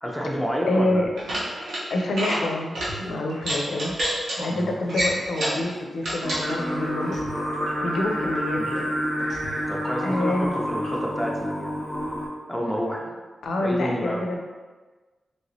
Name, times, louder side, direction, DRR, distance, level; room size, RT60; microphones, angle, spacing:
voice 1, 0.0-1.1 4.5-4.7 8.6-8.7 9.7-11.8 12.5-13.1 13.6-14.2, equal, 5° left, -1 dB, 0.4 m, -29 dB
voice 2, 0.6-1.1 1.9-4.0 4.4-7.2 7.8-8.9 10.0-10.5 13.4-14.4, left 1 dB, 85° left, 1 dB, 0.4 m, -27 dB
sound 1, 1.2-1.8 2.1-2.4 2.7-2.9 3.4-4.4 4.9-5.6 6.0-6.4, right 1 dB, 90° right, 1.0 m, -27 dB
sound 2, 2.8-11.4, right 2 dB, 60° right, 0.6 m, -44 dB
Singing, 6.2-12.3, equal, 25° right, 0.8 m, -28 dB
3.1 x 2.9 x 2.7 m, 1.3 s
wide cardioid pair, 155°, 0 cm